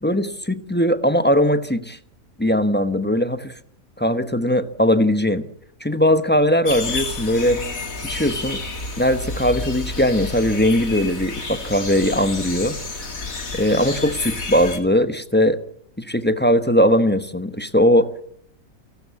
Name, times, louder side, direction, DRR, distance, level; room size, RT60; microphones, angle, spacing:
voice 1, 0.0-2.0 2.4-3.5 4.0-5.4 5.8-7.6 8.0-8.6 9.0-12.8 13.5-15.6 16.0-18.1, equal, 10° left, 10 dB, 0.9 m, -19 dB
sound 1, 6.7-14.8, left 3 dB, 90° left, 3.0 m, -30 dB
28.5 x 13.0 x 8.4 m, 0.69 s
omnidirectional pair, 1.4 m